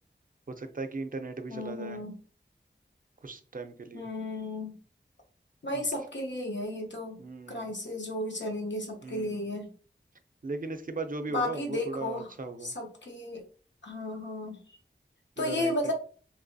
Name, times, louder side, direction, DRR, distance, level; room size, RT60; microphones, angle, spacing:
voice 1, 0.5-2.0 3.2-4.1 5.7-5.9 7.2-7.7 9.0-9.5 10.4-12.7 15.4-15.9, right 3 dB, 45° right, 8 dB, 0.5 m, -37 dB
voice 2, 1.5-2.1 3.9-4.7 5.6-7.2 7.5-9.7 11.3-12.3 12.6-13.4 13.8-14.6 15.4-15.9, left 1 dB, 75° left, 1 dB, 0.9 m, -33 dB
3.1 x 2.9 x 2.6 m, 0.41 s
wide cardioid pair, 50°, 19 cm